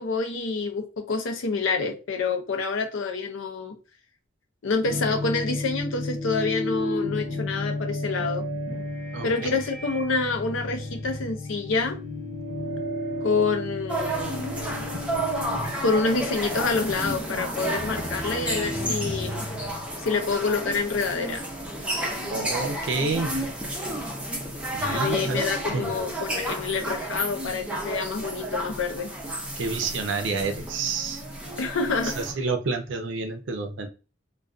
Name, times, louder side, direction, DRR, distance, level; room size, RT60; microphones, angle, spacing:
voice 1, 0.0-3.8 4.6-8.4 9.2-12.0 13.2-14.4 15.8-19.5 20.0-21.4 24.8-29.1 31.6-32.2, left 4 dB, 80° left, 0.5 m, -27 dB
sound 1, 4.8-20.0, left 1 dB, 40° left, 0.8 m, -33 dB
sound 2, 13.9-32.3, right 1 dB, 5° right, 0.5 m, -32 dB
voice 2, 22.3-23.5 24.7-25.9 29.6-31.2 32.0-33.9, right 4 dB, 70° right, 0.5 m, -29 dB
2.4 x 2.2 x 2.3 m
head